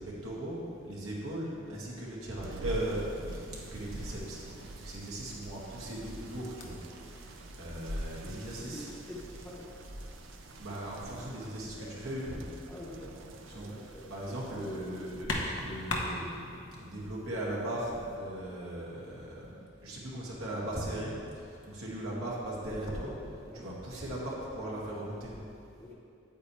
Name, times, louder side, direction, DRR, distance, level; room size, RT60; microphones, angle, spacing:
voice 1, 0.0-6.8 7.1-8.9 10.6-12.4 12.9-15.3 15.6-23.2 23.5-25.4, right 1 dB, 90° right, -5 dB, 2.0 m, -38 dB
sound 1, 2.4-15.2, right 2 dB, 65° right, 0.4 m, -47 dB
sound 2, 2.7-11.2, right 1 dB, 45° right, 1.1 m, -58 dB
sound 3, 3.5-18.2, left 1 dB, 60° left, 1.0 m, -43 dB
voice 2, 8.2-9.7 12.7-14.8 23.5-23.7 25.8-25.9, left 1 dB, 10° left, -6 dB, 0.9 m, -47 dB
8.7 x 8.3 x 3.3 m, 2.5 s
head